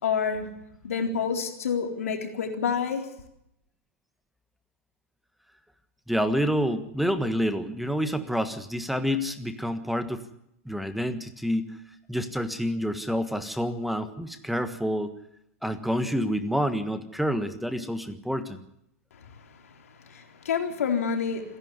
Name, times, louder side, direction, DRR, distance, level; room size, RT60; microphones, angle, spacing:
voice 1, 0.0-0.5 0.8-3.1 20.1-21.6, left 6 dB, 75° left, 4 dB, 4.1 m, -28 dB
voice 2, 6.1-10.2 10.6-11.8 12.1-15.1 15.6-18.6, equal, ahead, 10 dB, 1.5 m, -28 dB
28.0 x 11.0 x 9.6 m, 0.78 s
hypercardioid pair, 105°, 8 cm